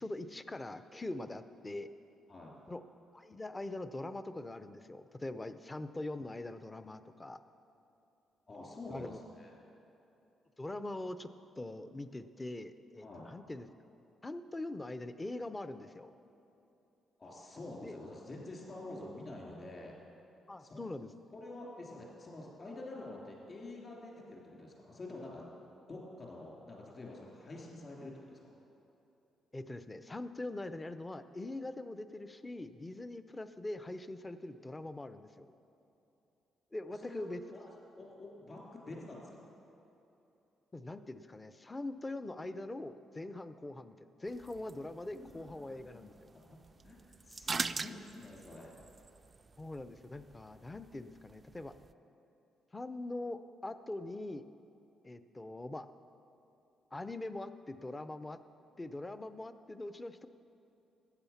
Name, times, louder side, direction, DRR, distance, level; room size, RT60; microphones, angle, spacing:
voice 1, 0.0-1.9 2.7-2.8 3.1-7.4 8.9-9.2 10.6-11.3 11.6-13.7 14.2-16.1 17.8-18.0 20.5-21.1 29.5-35.5 36.7-37.4 40.7-43.9 44.2-46.2 49.6-51.7 52.7-54.5 55.0-55.9 56.9-58.4 58.8-60.3, left 2 dB, 20° left, 12 dB, 0.5 m, -42 dB
voice 2, 8.5-9.5 13.0-13.2 17.2-20.0 20.6-20.8 21.3-25.4 25.9-28.5 36.9-37.2 37.5-39.5 45.1-46.0 46.3-46.6 46.8-48.8, left 2 dB, 40° left, -2 dB, 3.1 m, -48 dB
sound 1, 44.2-51.9, right 4 dB, 35° right, 0.3 m, -44 dB
13.0 x 8.9 x 5.8 m, 3.0 s
cardioid pair, 90°, 0 cm